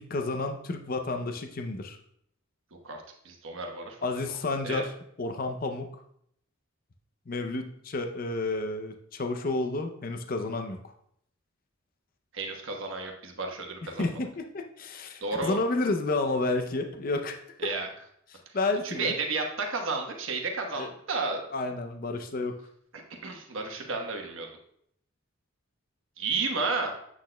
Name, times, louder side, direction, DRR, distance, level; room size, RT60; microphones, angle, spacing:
voice 1, 0.0-2.0 4.0-6.0 7.3-10.8 14.0-17.4 18.3-19.1 20.8-20.9 21.5-22.6, left 2 dB, 45° left, 5 dB, 0.5 m, -31 dB
voice 2, 3.2-4.0 4.6-4.8 12.3-14.0 15.2-15.6 17.6-17.9 18.8-21.4 23.2-24.5 26.2-26.9, right 3 dB, 75° right, 2 dB, 1.1 m, -32 dB
8.3 x 6.2 x 2.2 m, 0.70 s
head